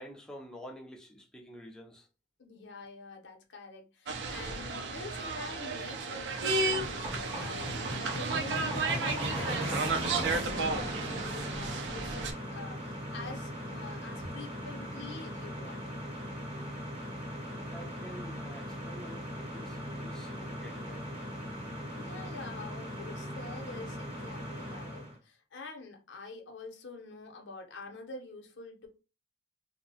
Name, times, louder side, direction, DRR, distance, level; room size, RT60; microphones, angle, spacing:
voice 1, 0.0-2.1 17.5-21.2, equal, 5° left, 0.4 m, -49 dB
voice 2, 2.4-15.8 22.0-28.9, left 3 dB, 75° left, 0.7 m, -46 dB
sound 1, 4.1-12.3, right 3 dB, 70° right, 0.4 m, -33 dB
sound 2, 5.7-25.1, equal, 30° right, 0.8 m, -39 dB
2.8 x 2.1 x 2.7 m
head